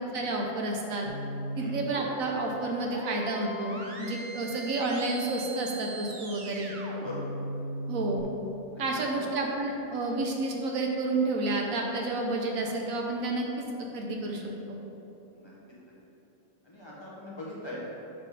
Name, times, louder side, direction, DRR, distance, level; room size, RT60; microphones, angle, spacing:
voice 1, 0.1-1.1 1.6-6.7 7.9-8.3 8.8-13.5 13.9-14.4 14.7-14.8, right 2 dB, 70° right, 0 dB, 1.2 m, -30 dB
Content warning, 1.1-8.2, right 1 dB, 45° right, 0.7 m, -39 dB
voice 2, 8.7-9.2 15.3-15.5 16.6-17.9, left 1 dB, 20° left, -7 dB, 1.2 m, -41 dB
7.4 x 4.3 x 4.9 m, 3.0 s
omnidirectional pair, 1.5 m